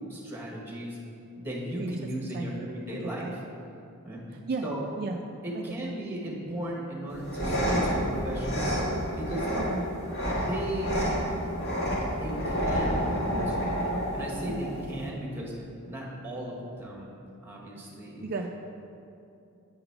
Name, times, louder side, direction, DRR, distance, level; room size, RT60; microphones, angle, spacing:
voice 1, 0.1-1.0 1.4-3.4 4.0-4.3 4.6-4.9 5.4-8.7 9.2-9.5 10.3-11.3 12.1-13.6 14.1-15.5 15.9-17.1 17.4-18.2, right 1 dB, 10° right, -3 dB, 1.2 m, -36 dB
voice 2, 2.3-2.7 3.0-3.3 4.3-4.7 5.0-5.2 5.5-5.9 9.7-9.9 13.4-14.0 14.5-14.7 18.2-18.5, right 3 dB, 45° right, 2 dB, 0.3 m, -35 dB
sound 1, 7.1-15.1, equal, 50° left, 1.7 m, -29 dB
8.6 x 3.9 x 5.6 m, 2.7 s
head